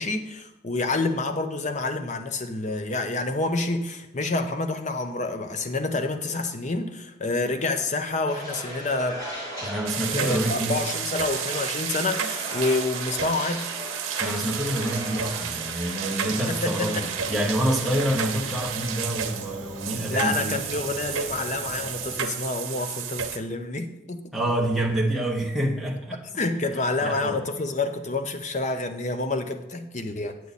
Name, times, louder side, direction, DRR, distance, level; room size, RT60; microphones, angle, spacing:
voice 1, 0.0-9.2 10.1-13.7 16.5-17.1 20.1-24.2 26.4-30.4, left 2 dB, 35° left, 7 dB, 0.7 m, -28 dB
sound 1, 8.3-17.5, equal, 15° left, 1.7 m, -38 dB
voice 2, 9.6-10.8 14.2-20.6 24.3-26.2 27.0-27.4, right 1 dB, ahead, -3 dB, 0.9 m, -27 dB
sound 2, 9.9-23.4, right 8 dB, 85° right, 0.8 m, -32 dB
Fire, 17.2-22.2, right 2 dB, 35° right, 0.9 m, -40 dB
8.3 x 8.2 x 4.1 m, 0.93 s
head